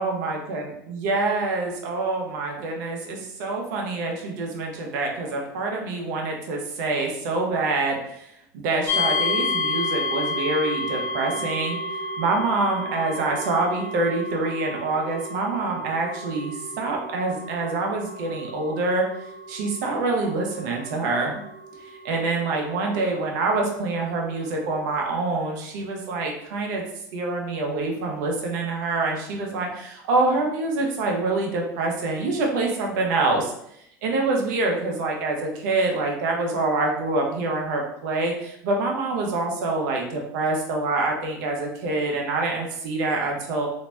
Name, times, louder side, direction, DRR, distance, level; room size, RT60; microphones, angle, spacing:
voice 1, 0.0-8.3 8.5-11.8 12.2-19.0 19.5-21.4 21.8-26.8 27.1-33.5 34.0-43.7, right 3 dB, 70° right, 1 dB, 0.7 m, -26 dB
sound 1, 8.9-23.7, left 2 dB, 25° left, 0.8 m, -31 dB
2.9 x 2.6 x 2.2 m, 0.75 s
hypercardioid pair, 75°, 10 cm